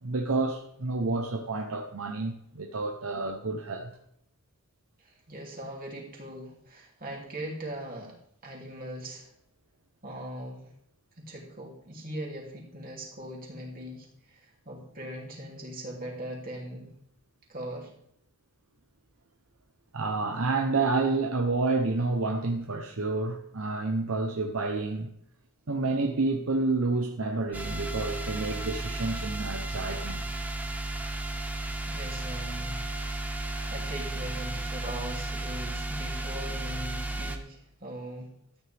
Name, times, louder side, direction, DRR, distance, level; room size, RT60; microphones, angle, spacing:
voice 1, 0.0-3.9 19.9-25.1 25.7-30.3, right 3 dB, 70° right, 0.9 m, -29 dB
voice 2, 5.0-8.1 8.4-9.3 10.0-10.7 11.2-16.9 17.5-17.9 31.9-32.8 33.3-38.3, right 1 dB, 40° right, 3.0 m, -40 dB
sound 1, 27.5-37.4, right 2 dB, 5° right, 0.9 m, -34 dB
13.0 x 9.5 x 3.5 m
head